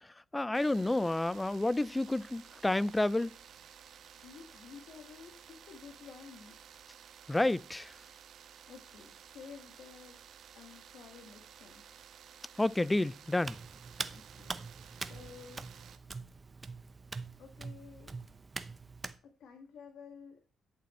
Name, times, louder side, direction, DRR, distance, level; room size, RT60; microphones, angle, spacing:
voice 1, 0.0-3.3 7.3-7.9 12.6-13.6, left 2 dB, 15° left, 0.4 m, -30 dB
sound 1, 0.5-16.0, right 8 dB, 65° right, 1.2 m, -55 dB
voice 2, 3.8-6.6 8.3-10.2 10.5-11.8 14.1-15.8 17.4-18.2 19.2-20.4, left 6 dB, 70° left, 1.8 m, -53 dB
Hands, 13.4-19.2, right 4 dB, 30° right, 0.8 m, -43 dB
11.5 x 7.0 x 4.3 m
cardioid pair, 90°, 0 cm